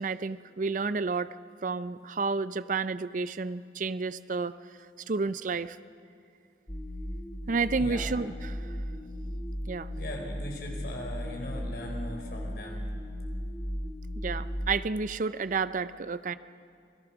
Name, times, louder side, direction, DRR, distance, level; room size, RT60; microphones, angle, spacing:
voice 1, 0.0-1.4 1.6-4.6 5.1-5.8 7.5-8.6 9.7-9.9 14.2-16.3, right 4 dB, 45° right, 14 dB, 0.5 m, -30 dB
sound 1, 6.7-14.8, equal, 20° left, 1.4 m, -36 dB
voice 2, 7.7-8.1 9.9-12.8, left 1 dB, 55° left, 0 dB, 4.5 m, -39 dB
26.5 x 17.5 x 6.0 m, 2.5 s
head